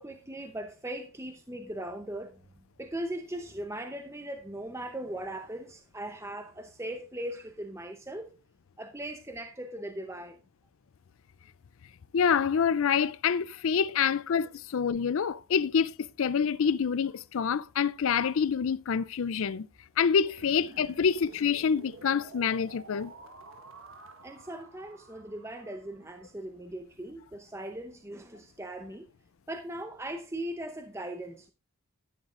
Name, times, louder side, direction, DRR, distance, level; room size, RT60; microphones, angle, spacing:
voice 1, 0.0-2.4 2.8-8.3 8.8-10.4 13.9-14.0 24.2-29.1 29.5-31.5, right 1 dB, 10° right, 0.7 m, -39 dB
voice 2, 12.1-19.7 20.0-23.1, left 6 dB, 65° left, 0.4 m, -27 dB
sound 1, 20.4-26.3, right 3 dB, 65° right, 1.5 m, -51 dB
11.0 x 11.0 x 2.5 m
head